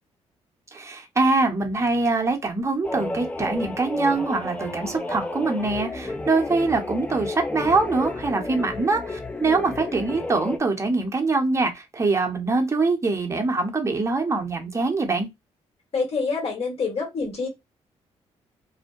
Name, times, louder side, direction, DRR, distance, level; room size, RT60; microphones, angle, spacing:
voice 1, 0.7-15.3, right 3 dB, 25° right, 0.8 m, -24 dB
sound 1, 2.8-10.6, left 2 dB, 10° left, 0.4 m, -32 dB
voice 2, 15.9-17.5, left 4 dB, 55° left, 1.5 m, -26 dB
2.6 x 2.1 x 2.4 m
cardioid pair, 80°, 12 cm